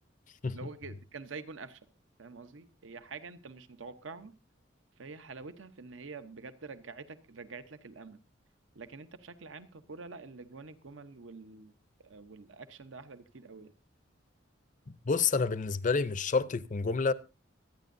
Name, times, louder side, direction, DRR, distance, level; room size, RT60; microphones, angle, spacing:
voice 1, 0.5-1.8 2.2-4.3 5.0-8.2 8.7-11.7 12.0-13.7, right 4 dB, 75° right, 0.9 m, -46 dB
voice 2, 15.1-17.1, left 4 dB, 40° left, 0.6 m, -28 dB
25.0 x 9.4 x 2.6 m
head